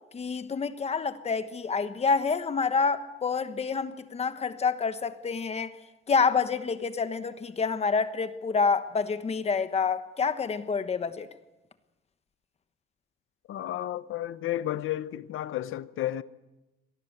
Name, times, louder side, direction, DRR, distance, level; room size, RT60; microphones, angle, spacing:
voice 1, 0.1-5.7 6.1-11.3, left 5 dB, 30° left, 1.2 m, -28 dB
voice 2, 13.5-16.2, left 13 dB, 70° left, 0.9 m, -32 dB
25.5 x 18.5 x 8.1 m
cardioid pair, 155°, 21 cm